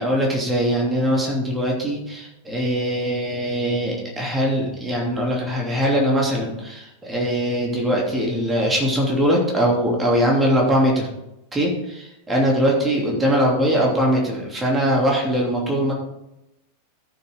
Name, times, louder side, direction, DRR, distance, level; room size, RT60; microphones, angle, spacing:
voice 1, 0.0-11.1 11.5-15.9, equal, 15° right, -2 dB, 2.8 m, -21 dB
14.0 x 6.9 x 3.6 m, 0.88 s
figure-of-eight pair, 90°, 0 cm